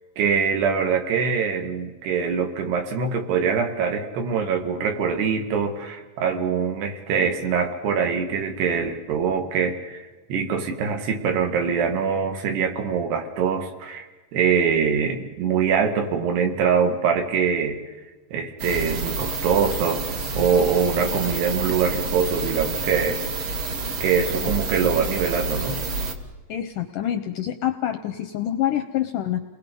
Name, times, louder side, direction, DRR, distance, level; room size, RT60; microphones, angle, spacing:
voice 1, 0.2-14.1 14.3-17.8 18.3-23.2 24.0-25.8, right 6 dB, 80° right, 5 dB, 3.9 m, -23 dB
sound 1, 18.6-26.1, right 3 dB, 60° right, 1.4 m, -28 dB
voice 2, 26.5-29.4, left 11 dB, 75° left, 7 dB, 1.9 m, -26 dB
30.0 x 20.5 x 5.4 m, 1.2 s
omnidirectional pair, 4.7 m